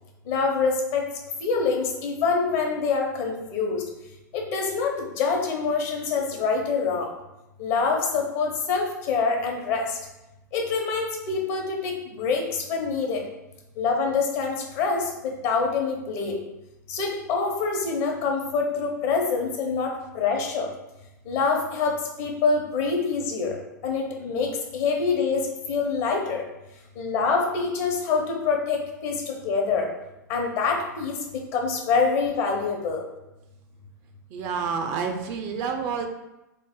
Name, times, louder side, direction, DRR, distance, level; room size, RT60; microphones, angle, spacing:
voice 1, 0.3-1.0 1.4-3.8 4.3-7.1 7.6-9.8 10.5-13.2 13.8-16.4 16.9-20.7 21.3-23.6 23.8-26.4 27.0-29.9 30.3-33.0, left 4 dB, 50° left, 1 dB, 0.9 m, -25 dB
voice 2, 34.3-36.1, right 6 dB, 50° right, 4 dB, 0.5 m, -29 dB
3.1 x 2.1 x 3.6 m, 0.96 s
hypercardioid pair, 105°, 10 cm